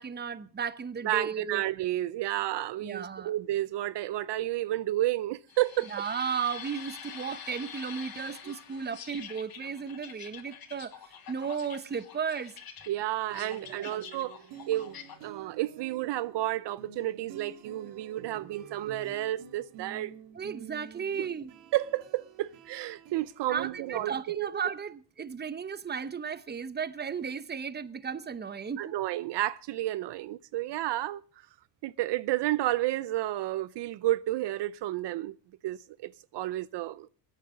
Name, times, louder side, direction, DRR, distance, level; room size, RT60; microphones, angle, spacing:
voice 1, 0.0-1.6 2.8-3.3 5.9-12.5 13.8-13.9 20.3-21.5 23.5-29.0, right 6 dB, 25° right, 0.9 m, -35 dB
voice 2, 1.0-5.9 12.9-14.4 14.7-15.0 15.2-20.1 21.2-21.3 21.7-24.5 28.8-31.2 31.8-35.4 35.6-37.1, right 15 dB, 70° right, 0.7 m, -31 dB
sound 1, 5.5-15.2, left 8 dB, 55° left, 3.0 m, -46 dB
sound 2, 13.3-24.1, right 9 dB, 85° right, 2.3 m, -49 dB
21.5 x 9.6 x 5.1 m
cardioid pair, 110°, 44 cm